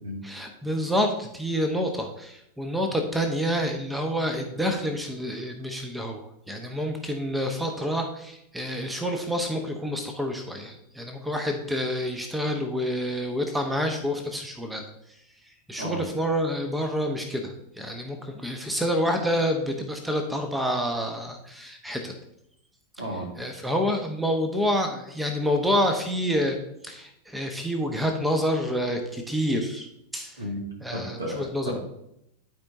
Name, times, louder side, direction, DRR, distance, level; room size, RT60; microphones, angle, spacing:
voice 1, 0.2-6.2 6.5-14.8 15.7-22.1 23.4-26.6 26.8-29.9 30.1-30.4 30.8-31.8, equal, 5° right, 4 dB, 0.9 m, -28 dB
voice 2, 23.0-23.3 30.4-30.6 30.9-31.8, equal, 70° right, 0 dB, 2.0 m, -33 dB
11.5 x 4.5 x 2.7 m, 0.79 s
figure-of-eight pair, 90°, 0 cm